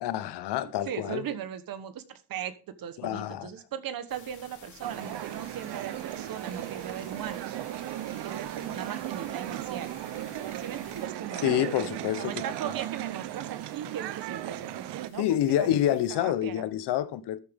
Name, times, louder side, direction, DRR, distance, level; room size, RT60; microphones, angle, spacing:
voice 1, 0.0-1.2 3.0-3.5 11.4-12.4 15.2-17.4, left 12 dB, 75° left, 1.1 m, -27 dB
voice 2, 0.9-7.6 8.2-9.9 10.6-15.8 16.1-16.6, right 9 dB, 55° right, 1.2 m, -38 dB
sound 1, 4.1-16.1, left 6 dB, 45° left, 3.2 m, -54 dB
sound 2, 4.8-15.1, right 13 dB, 75° right, 0.9 m, -36 dB
13.0 x 8.9 x 3.6 m
cardioid pair, 140°, 41 cm